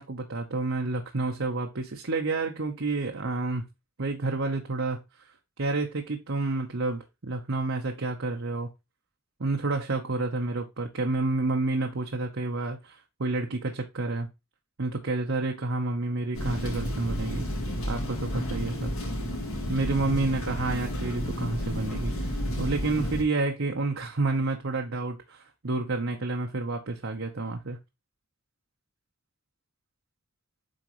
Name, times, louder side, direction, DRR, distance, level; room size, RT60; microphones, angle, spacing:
voice 1, 0.0-3.7 4.0-5.3 5.6-8.7 9.4-14.3 14.8-17.4 17.9-18.9 19.7-27.8, right 3 dB, 60° right, 0.9 m, -29 dB
sound 1, 16.3-23.2, equal, 75° left, 3.0 m, -31 dB
7.8 x 4.4 x 3.0 m
head